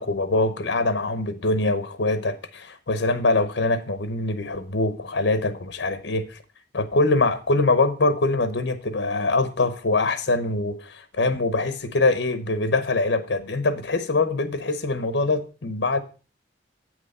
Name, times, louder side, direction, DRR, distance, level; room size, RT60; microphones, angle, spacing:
voice 1, 0.0-6.4 6.7-16.0, left 2 dB, 75° left, 11 dB, 0.9 m, -23 dB
8.4 x 6.2 x 5.3 m, 0.35 s
head